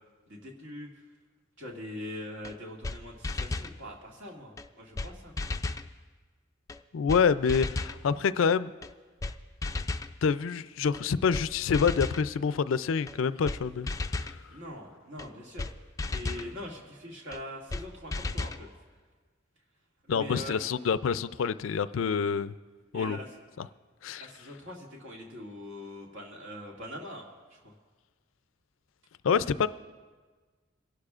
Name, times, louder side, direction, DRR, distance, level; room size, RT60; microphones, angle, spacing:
voice 1, 0.3-0.9 1.6-5.3 14.5-15.7 16.1-18.7 20.0-20.6 22.9-23.3 24.2-27.3 27.5-27.7, left 1 dB, 70° right, 2.2 m, -42 dB
sound 1, 2.4-2.5 2.8-3.0 3.2-3.7 4.6-4.7 5.0-5.1 5.4-5.9 6.7-6.8 7.1-7.2 7.5-8.0 8.8-8.9 9.2-9.4 9.6-10.1 10.9-11.0 11.3-11.5 11.7-12.2 13.1-13.2 13.5-13.6 13.9-14.4 15.2-15.3 15.6-15.7 16.0-16.5 17.3-17.4 17.7-17.8 18.1-18.6, left 3 dB, 15° left, 0.3 m, -33 dB
voice 2, 6.9-8.7 10.2-13.9 14.1-14.4 20.1-22.5 22.9-23.2 23.6-23.7 24.0-24.3 29.2-29.7, left 6 dB, 90° left, 0.4 m, -27 dB
27.5 x 11.5 x 2.4 m
head